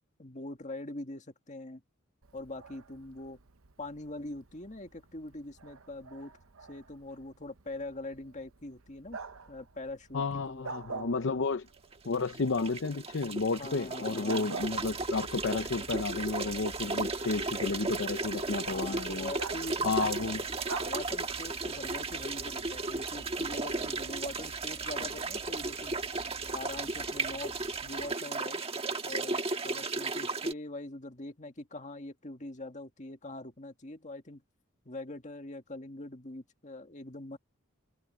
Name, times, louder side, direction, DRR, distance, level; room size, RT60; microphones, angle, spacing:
voice 1, 0.0-1.8 2.3-3.4 3.8-6.3 6.7-9.2 9.5-11.4 13.5-14.5 18.7-20.3 20.8-26.0 26.5-27.5 27.8-28.6 29.0-34.4 34.9-37.4, left 2 dB, 35° left, 1.9 m, -43 dB
Bark, 2.2-21.6, right 4 dB, 75° right, 1.0 m, -47 dB
voice 2, 10.1-11.7 12.1-19.3 19.8-20.4, left 4 dB, 60° left, 0.7 m, -32 dB
sound 1, 11.9-30.5, right 3 dB, 30° right, 1.4 m, -35 dB
sound 2, 14.6-28.1, equal, 15° left, 2.1 m, -52 dB
head